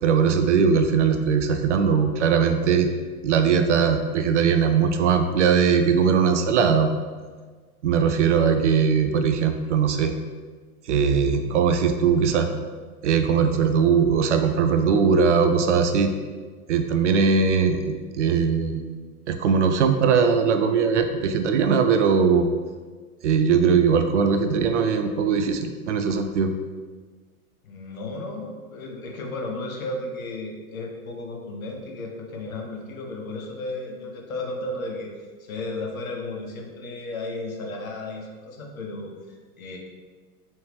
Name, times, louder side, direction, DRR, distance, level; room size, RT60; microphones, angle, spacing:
voice 1, 0.0-2.9 3.2-6.9 7.8-10.1 10.9-12.5 13.0-16.1 16.7-18.8 19.3-22.5 23.2-26.5, right 6 dB, 55° right, 7 dB, 0.5 m, -20 dB
voice 2, 27.6-39.8, left 2 dB, 65° left, 1 dB, 1.0 m, -34 dB
4.7 x 3.1 x 3.3 m, 1.5 s
figure-of-eight pair, 95°, 45 cm